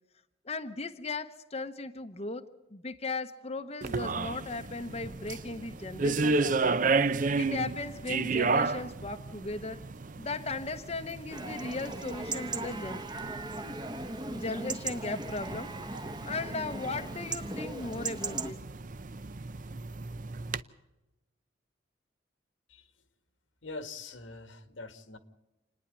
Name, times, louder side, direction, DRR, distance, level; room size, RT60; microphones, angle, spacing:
voice 1, 0.5-2.4 2.7-6.8 7.3-9.8 10.2-13.0 14.3-15.7 16.3-18.6, left 3 dB, 35° left, 7 dB, 0.8 m, -37 dB
sound 1, 3.8-20.6, right 3 dB, 45° right, 0.6 m, -33 dB
Chatter / Livestock farm animals working animals / Chirp tweet, 11.3-18.5, right 3 dB, 25° right, 1.1 m, -38 dB
voice 2, 23.6-25.2, left 3 dB, 85° left, 10 dB, 1.8 m, -43 dB
28.5 x 10.0 x 9.5 m, 1.0 s
head